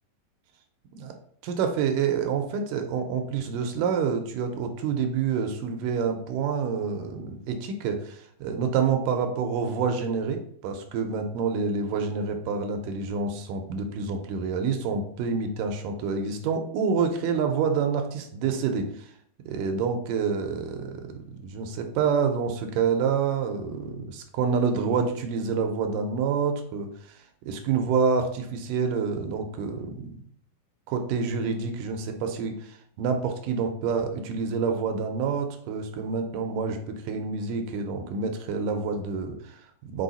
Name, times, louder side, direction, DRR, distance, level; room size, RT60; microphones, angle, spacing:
voice 1, 1.4-19.1 19.5-21.1 21.4-30.2 30.9-40.0, right 5 dB, 80° right, 5 dB, 2.1 m, -28 dB
5.5 x 4.5 x 4.0 m, 0.64 s
omnidirectional pair, 4.2 m